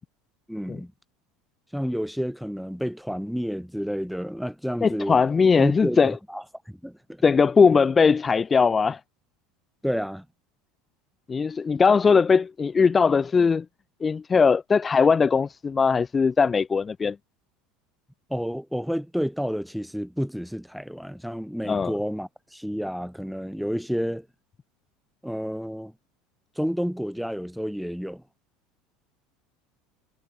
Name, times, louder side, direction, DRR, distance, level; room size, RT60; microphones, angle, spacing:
voice 1, 0.5-0.9 1.7-5.2 5.6-7.2 9.8-10.2 18.3-24.3 25.2-25.9 26.6-28.2, equal, ahead, 1.1 m, -30 dB
voice 2, 4.8-6.1 7.2-9.0 11.3-13.7 14.0-17.2 21.6-21.9, left 5 dB, 25° left, 0.3 m, -20 dB
hypercardioid pair, 80°, 0 cm